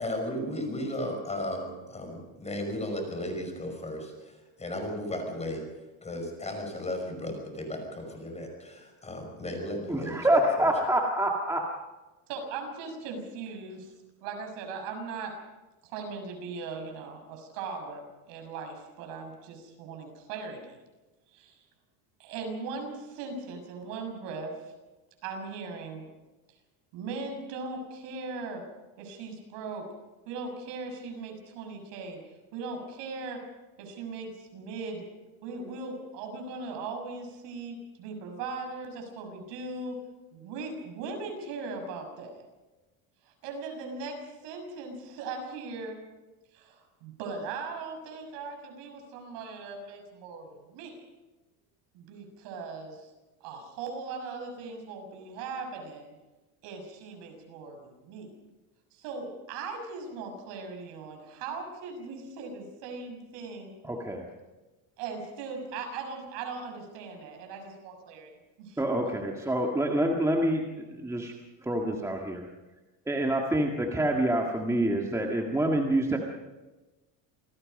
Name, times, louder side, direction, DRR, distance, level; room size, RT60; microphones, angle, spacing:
voice 1, 0.0-4.3 4.6-5.6 6.0-10.3 10.6-10.7, left 1 dB, 15° left, 4 dB, 5.7 m, -35 dB
voice 2, 9.9-11.7 63.8-64.3 68.8-71.3 71.6-72.5 73.1-76.2, right 1 dB, 5° right, 0 dB, 1.8 m, -27 dB
voice 3, 12.3-13.8 14.2-15.3 15.8-20.8 21.3-21.6 22.2-24.7 25.2-26.1 26.9-28.6 29.0-29.9 30.3-32.2 32.5-33.4 33.8-35.0 35.4-40.0 40.3-42.3 43.2-46.0 46.5-51.0 51.9-53.1 53.4-56.1 56.6-58.3 58.9-63.7 65.0-68.3 68.6-68.8, right 4 dB, 70° right, 4 dB, 6.8 m, -39 dB
27.5 x 18.5 x 5.4 m, 1.1 s
cardioid pair, 145°, 44 cm